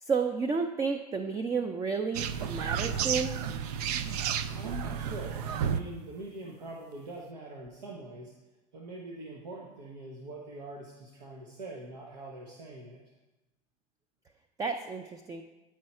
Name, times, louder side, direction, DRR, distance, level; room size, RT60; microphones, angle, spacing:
voice 1, 0.0-3.4 14.6-15.4, right 5 dB, 15° right, 6 dB, 0.4 m, -31 dB
sound 1, 2.1-5.8, right 8 dB, 70° right, 0.5 m, -32 dB
voice 2, 4.5-8.3 8.7-13.0, right 2 dB, 85° right, -1 dB, 1.1 m, -43 dB
9.6 x 4.7 x 4.3 m, 1.1 s
hypercardioid pair, 100°, 21 cm